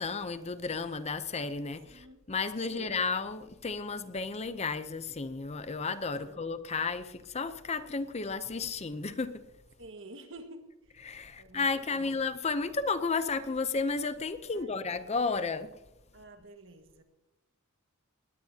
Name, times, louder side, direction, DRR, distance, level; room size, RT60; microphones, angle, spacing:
voice 1, 0.0-9.4 11.0-15.7, left 4 dB, 30° left, 12 dB, 0.6 m, -33 dB
voice 2, 1.9-2.3 2.6-3.0 6.2-6.6 9.8-10.8 11.4-12.2 14.5-15.0 16.1-17.0, right 2 dB, 60° right, 6 dB, 1.7 m, -50 dB
19.5 x 18.5 x 2.8 m, 0.99 s
head